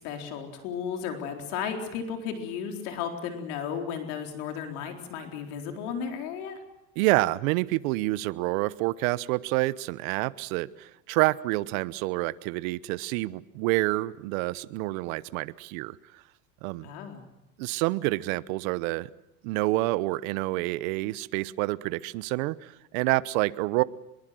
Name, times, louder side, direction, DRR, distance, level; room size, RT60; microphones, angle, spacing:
voice 1, 0.0-6.6 16.8-17.2, left 7 dB, 60° left, 4 dB, 4.2 m, -34 dB
voice 2, 7.0-16.0 16.6-16.9 17.6-19.1 19.4-23.8, right 20 dB, 55° right, 17 dB, 1.0 m, -28 dB
23.5 x 22.5 x 7.7 m, 0.90 s
supercardioid pair, 140°, 48 cm